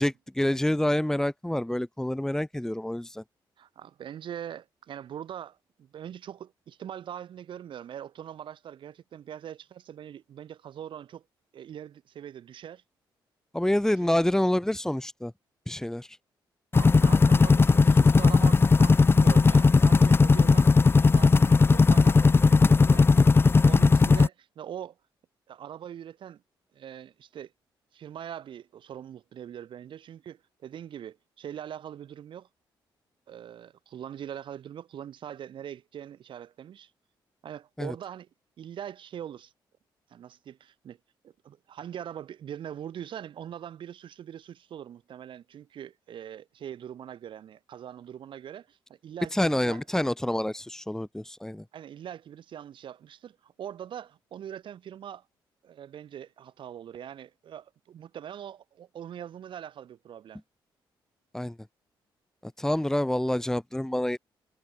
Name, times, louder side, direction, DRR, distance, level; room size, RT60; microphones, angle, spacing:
voice 1, 0.0-3.2 13.5-15.3 15.7-16.2 37.8-37.9 49.3-51.6 61.3-61.6 62.4-64.2, left 1 dB, 5° left, 2.5 m, -27 dB
voice 2, 3.6-11.2 11.5-12.8 14.0-14.1 16.7-20.8 21.1-25.0 25.5-26.4 26.7-27.5 27.9-32.5 33.3-36.9 37.4-38.3 38.6-39.5 40.1-41.0 41.2-49.8 51.7-55.2 55.6-60.4, right 9 dB, 70° right, 7.0 m, -42 dB
sound 1, 16.7-24.3, left 4 dB, 25° left, 0.8 m, -18 dB
cardioid pair, 90°, 9 cm